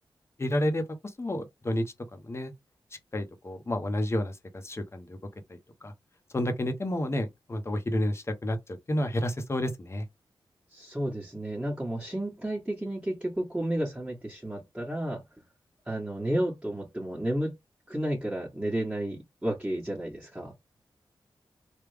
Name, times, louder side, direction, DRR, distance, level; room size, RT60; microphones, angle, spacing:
voice 1, 0.4-0.8 1.2-1.9 2.2-2.5 3.1-4.4 4.6-5.2 5.5-5.9 6.3-10.0, left 1 dB, 30° left, 0.8 m, -30 dB
voice 2, 10.7-15.2 15.9-17.5 17.9-20.5, right 1 dB, 10° right, 1.3 m, -32 dB
3.4 x 2.3 x 3.3 m
wide cardioid pair, 90°, 9 cm